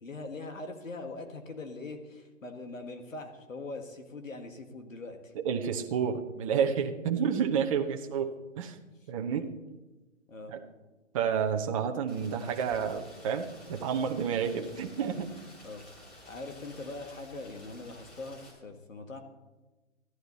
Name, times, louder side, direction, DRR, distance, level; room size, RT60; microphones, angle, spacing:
voice 1, 0.0-5.3 7.1-7.2 7.7-7.8 9.3-9.5 10.3-10.5 15.6-15.9 16.3-19.2, left 3 dB, 90° left, 5 dB, 1.9 m, -42 dB
voice 2, 5.4-8.8 9.1-9.4 10.5-10.6 11.1-15.3, right 7 dB, 25° right, 4 dB, 0.9 m, -30 dB
Rain, 12.1-18.5, left 1 dB, 15° left, 3.4 m, -52 dB
14.5 x 11.5 x 4.1 m, 1.2 s
hypercardioid pair, 145°, 38 cm